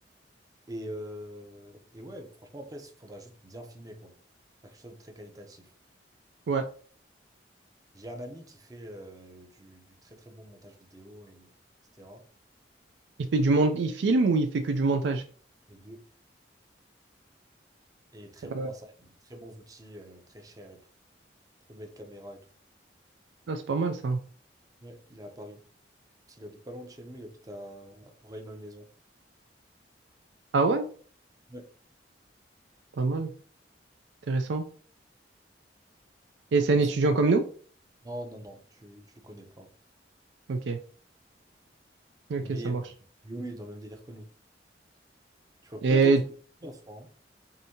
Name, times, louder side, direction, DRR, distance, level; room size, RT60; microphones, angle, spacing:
voice 1, 0.7-4.2 4.6-5.7 7.9-11.5 12.0-12.3 15.7-16.0 18.1-20.8 21.7-22.5 24.8-25.6 26.3-28.9 31.5-31.7 36.7-36.9 38.0-39.7 42.4-42.7 43.2-44.3 45.6-46.2 46.6-47.1, equal, 20° right, 0.6 m, -43 dB
voice 2, 13.3-15.2 18.5-18.7 23.5-24.2 30.5-30.9 33.0-33.3 34.3-34.6 36.5-37.4 40.5-40.8 42.3-42.8 45.8-46.2, right 3 dB, 75° right, 0.4 m, -24 dB
4.9 x 2.7 x 2.8 m
head